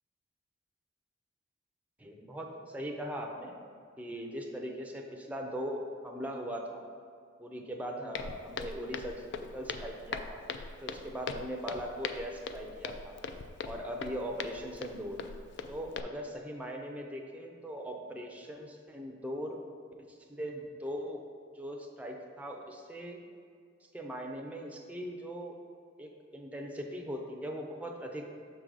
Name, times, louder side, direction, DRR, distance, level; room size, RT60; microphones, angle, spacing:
voice 1, 2.0-3.6 4.0-6.8 7.4-9.2 9.5-10.4 10.8-13.2 13.6-15.2 15.7-19.6 20.0-21.2 21.5-23.2 23.9-25.6 26.0-28.4, equal, 5° right, 1 dB, 0.5 m, -40 dB
Walk footsteps, 8.1-16.0, left 5 dB, 60° left, 0.3 m, -41 dB
6.4 x 3.8 x 4.7 m, 2.3 s
head